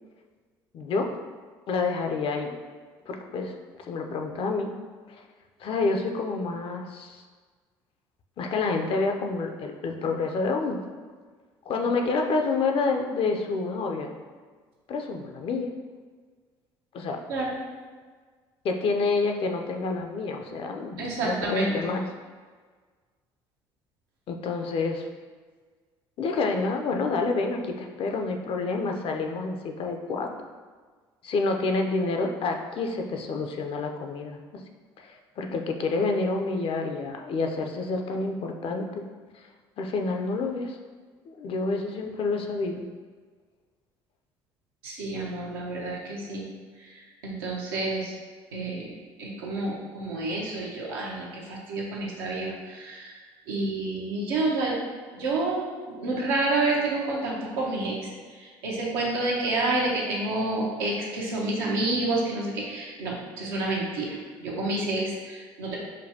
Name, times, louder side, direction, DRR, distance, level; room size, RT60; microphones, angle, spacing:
voice 1, 0.7-1.1 1.7-2.6 3.1-3.5 3.8-4.7 5.6-7.2 8.4-10.8 11.7-14.2 14.9-15.7 16.9-17.2 18.6-22.0 24.3-25.0 26.2-30.3 31.2-34.4 35.0-39.0 39.8-40.8 41.3-42.8, left 3 dB, 50° left, 4 dB, 0.5 m, -28 dB
voice 2, 21.0-21.7 44.8-46.5 46.8-46.9 47.2-48.2 48.5-48.9 49.2-53.1 53.5-54.8 55.1-58.1 58.4-65.8, right 2 dB, 90° right, -3 dB, 0.8 m, -29 dB
5.1 x 2.2 x 2.8 m, 1.5 s
hypercardioid pair, 70°, 12 cm